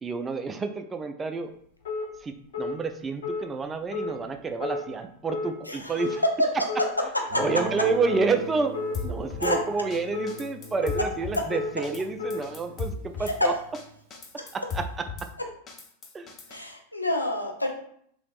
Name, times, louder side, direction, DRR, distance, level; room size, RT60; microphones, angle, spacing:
voice 1, 0.0-1.5 2.2-6.2 6.5-6.6 7.4-8.7 9.0-13.5 14.5-14.8 16.1-16.4, right 4 dB, 15° right, 7 dB, 0.3 m, -29 dB
sound 1, 1.9-2.1 2.5-2.7 3.2-3.4 3.9-4.1 4.6-4.8 5.3-5.5 6.0-6.2 6.7-6.9 7.4-7.6 8.1-8.3 8.7-9.0 9.4-9.6 10.1-10.3 10.8-11.0 11.5-11.7 12.2-12.4, left 3 dB, 60° left, 1.1 m, -31 dB
Guitar, 7.3-13.9, right 2 dB, 55° right, 0.8 m, -40 dB
Drum kit / Snare drum, 8.9-9.5 9.9-10.0 10.3-11.4 11.8-12.0 12.3-13.4 13.7-13.8 14.1-15.3 15.7-16.6, left 4 dB, 25° left, 0.6 m, -36 dB
voice 2, 16.5-17.7, left 1 dB, 85° left, 2 dB, 0.5 m, -27 dB
3.4 x 2.8 x 2.4 m, 0.66 s
figure-of-eight pair, 90°, 0 cm